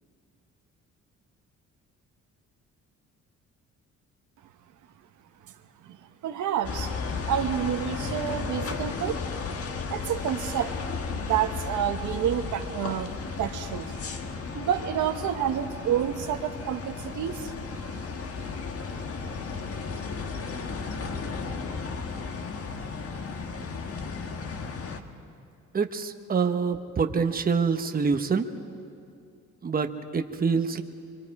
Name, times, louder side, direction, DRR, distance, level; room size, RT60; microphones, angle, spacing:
voice 1, 6.2-6.9 7.3-9.2 9.9-10.7 11.1-13.9 14.5-17.5, right 10 dB, 75° right, 6 dB, 1.2 m, -29 dB
sound 1, 6.6-25.0, left 4 dB, 50° left, 1.5 m, -34 dB
voice 2, 25.7-28.5 29.6-30.8, right 5 dB, 30° right, 6 dB, 1.0 m, -26 dB
25.0 x 23.0 x 4.8 m, 2.5 s
cardioid pair, 90°, 30 cm